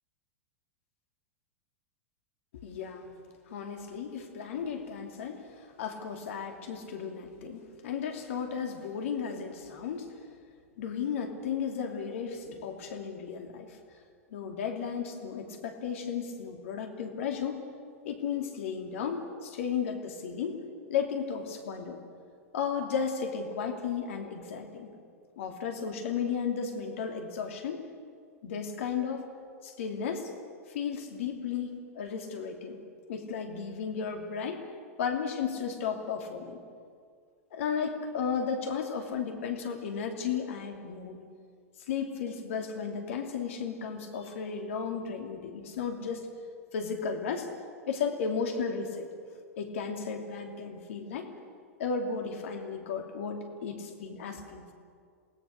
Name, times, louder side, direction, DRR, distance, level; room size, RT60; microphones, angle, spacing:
voice 1, 2.6-3.1 3.5-10.1 10.8-13.8 14.3-17.6 18.0-20.6 20.9-22.0 22.5-24.9 25.4-27.8 28.4-29.3 29.6-30.3 30.7-32.8 33.1-34.6 35.0-36.6 37.5-41.2 41.9-46.3 46.7-47.5 47.8-49.1 49.5-51.3 51.8-54.7, left 6 dB, 60° left, 4 dB, 2.9 m, -34 dB
28.0 x 19.5 x 6.6 m, 2.1 s
figure-of-eight pair, 95°, 8 cm